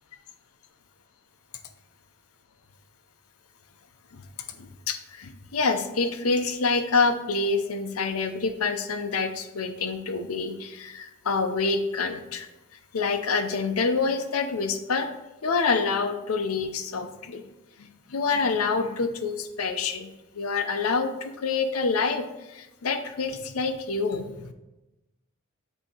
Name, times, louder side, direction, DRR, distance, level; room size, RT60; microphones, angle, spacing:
voice 1, 4.6-12.5 12.9-15.1 15.4-17.4 17.8-20.1 20.3-24.5, left 4 dB, 85° left, 8 dB, 0.6 m, -27 dB
7.9 x 2.8 x 4.4 m, 1.0 s
head